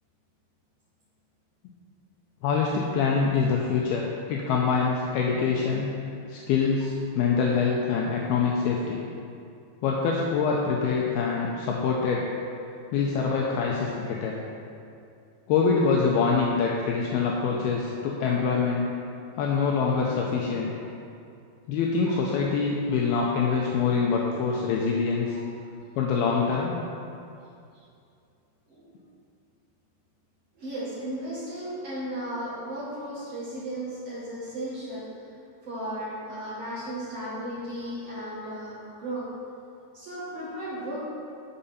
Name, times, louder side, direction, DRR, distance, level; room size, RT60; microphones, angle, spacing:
voice 1, 2.4-5.9 6.3-9.0 9.8-12.2 12.9-14.4 15.5-18.9 19.4-20.7 21.7-25.4 26.0-26.8, left 5 dB, 85° left, -2 dB, 2.2 m, -25 dB
voice 2, 28.7-29.0 30.5-35.1 35.6-39.3 39.9-41.0, right 1 dB, 60° right, -7 dB, 1.6 m, -35 dB
11.0 x 6.7 x 4.3 m, 2.5 s
omnidirectional pair, 5.2 m